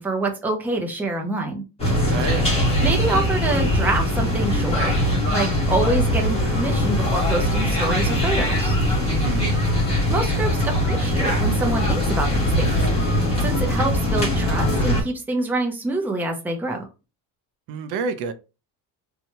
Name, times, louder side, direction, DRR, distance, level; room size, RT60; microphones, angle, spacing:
voice 1, 0.0-1.6 2.8-4.9 5.3-8.8 10.1-12.8 13.4-16.8, right 2 dB, 5° right, 0.5 m, -26 dB
sound 1, 1.8-15.0, left 1 dB, 15° left, 1.3 m, -21 dB
voice 2, 2.1-2.5 9.0-9.6 17.7-18.3, right 4 dB, 75° right, 0.6 m, -29 dB
3.0 x 2.3 x 2.7 m
cardioid pair, 145°, 41 cm